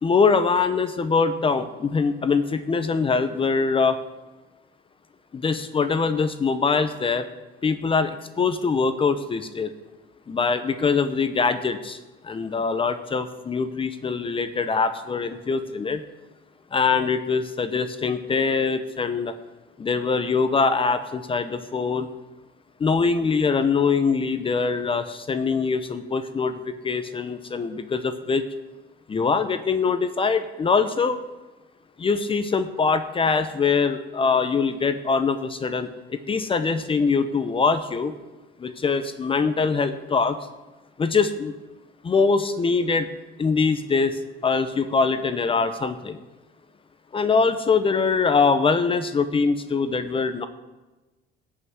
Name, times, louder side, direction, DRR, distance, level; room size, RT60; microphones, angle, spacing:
voice 1, 0.0-4.0 5.3-7.3 7.6-9.7 10.3-12.0 12.2-16.0 16.7-19.3 19.8-22.1 22.8-28.5 29.1-31.2 32.0-38.1 38.6-40.4 41.0-41.5 42.0-43.1 43.4-46.2 47.1-50.5, left 5 dB, 25° left, 10 dB, 0.8 m, -23 dB
17.0 x 5.8 x 8.0 m, 1.1 s
cardioid pair, 120°, 20 cm